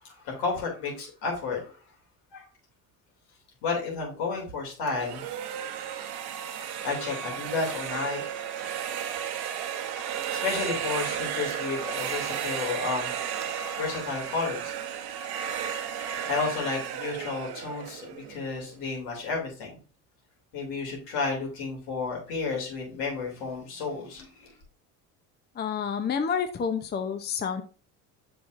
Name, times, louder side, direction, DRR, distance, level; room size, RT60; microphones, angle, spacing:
voice 1, 0.0-1.8 2.3-2.5 3.6-5.2 6.8-8.2 10.3-13.1 13.8-14.7 16.0-19.8 20.5-24.5, left 4 dB, 75° left, 0 dB, 2.9 m, -32 dB
sound 1, 4.9-18.7, right 9 dB, 60° right, 1.0 m, -34 dB
voice 2, 25.6-27.6, left 6 dB, 25° left, 8 dB, 0.6 m, -29 dB
6.8 x 5.7 x 2.5 m, 0.37 s
hypercardioid pair, 70°, 44 cm